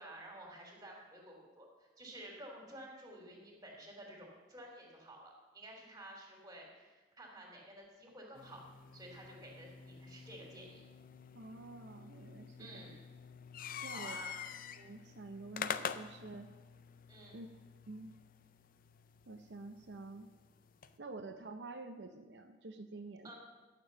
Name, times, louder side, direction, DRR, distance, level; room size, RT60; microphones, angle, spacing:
voice 1, 0.0-8.6 8.9-10.8 12.6-13.0 13.9-14.4 17.1-17.4 23.2-23.3, right 1 dB, 20° right, -1 dB, 3.0 m, -52 dB
sound 1, 8.4-21.0, left 7 dB, 55° left, 0.5 m, -47 dB
voice 2, 11.3-13.0 13.8-14.2 14.7-16.5 17.3-17.5 17.9-18.1 19.3-20.3 21.0-23.3, right 3 dB, 80° right, 5 dB, 0.7 m, -48 dB
11.5 x 7.1 x 6.6 m, 1.2 s
head